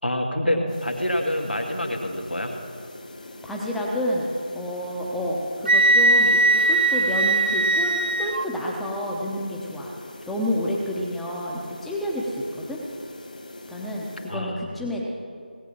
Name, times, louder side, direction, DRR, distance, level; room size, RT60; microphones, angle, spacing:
voice 1, 0.0-2.5 14.3-14.6, left 1 dB, 90° left, 2 dB, 2.1 m, -26 dB
sound 1, 0.7-14.4, left 2 dB, 50° left, 1.8 m, -42 dB
voice 2, 3.4-4.2 4.5-9.9 10.3-12.8 13.7-15.0, left 1 dB, ahead, -3 dB, 0.8 m, -29 dB
Wind instrument woodwind instrument, 5.7-8.5, right 2 dB, 65° right, 0.7 m, -19 dB
18.0 x 8.3 x 7.1 m, 2.3 s
figure-of-eight pair, 165°, 5 cm